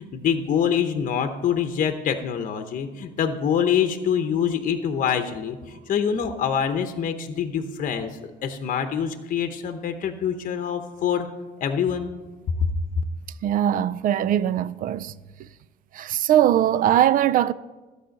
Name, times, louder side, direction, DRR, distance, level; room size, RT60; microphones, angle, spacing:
voice 1, 0.0-11.3 11.6-12.1 12.6-12.7, left 8 dB, 50° left, 0.8 m, -25 dB
voice 2, 13.4-15.1 15.9-17.5, right 11 dB, 55° right, 0.4 m, -21 dB
13.0 x 4.9 x 7.7 m
cardioid pair, 110°, 17 cm